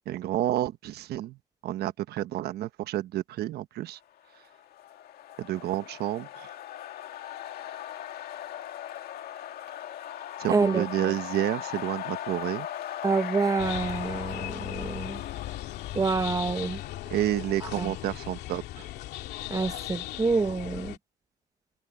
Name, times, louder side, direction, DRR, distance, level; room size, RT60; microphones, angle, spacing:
voice 1, 0.1-1.4 1.6-4.0 5.4-6.5 10.4-12.7 17.1-18.9, right 14 dB, 70° right, 1.1 m, -30 dB
sound 1, 4.3-18.1, left 11 dB, 65° left, 2.0 m, -39 dB
voice 2, 10.5-11.1 13.0-15.2 15.9-16.8 17.8-17.9 19.5-20.9, right 4 dB, 20° right, 1.3 m, -27 dB
sound 2, 13.6-21.0, left 15 dB, 80° left, 2.4 m, -37 dB
cardioid pair, 110°, 17 cm